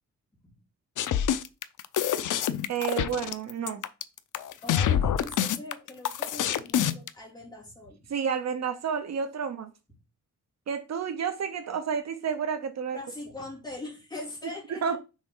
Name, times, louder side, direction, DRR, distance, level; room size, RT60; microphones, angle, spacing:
sound 1, 1.0-7.1, left 10 dB, 75° left, 0.6 m, -26 dB
voice 1, 2.7-3.8 8.1-9.7 10.7-13.0 14.7-15.0, right 7 dB, 55° right, 0.7 m, -30 dB
voice 2, 4.6-8.1 12.9-15.0, left 2 dB, 15° left, 2.8 m, -41 dB
6.4 x 4.4 x 3.7 m
wide cardioid pair, 180°, 31 cm